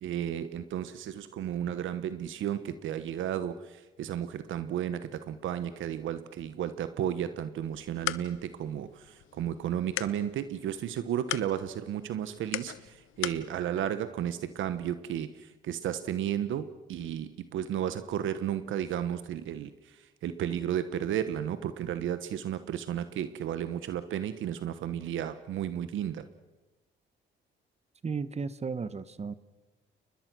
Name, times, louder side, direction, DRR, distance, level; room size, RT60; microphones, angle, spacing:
voice 1, 0.0-26.3, right 10 dB, 80° right, 12 dB, 1.2 m, -33 dB
sound 1, 7.6-13.5, left 15 dB, 90° left, 0.9 m, -40 dB
voice 2, 28.0-29.3, right 5 dB, 35° right, 15 dB, 1.2 m, -34 dB
30.0 x 20.5 x 6.2 m, 1.1 s
cardioid pair, 90°, 20 cm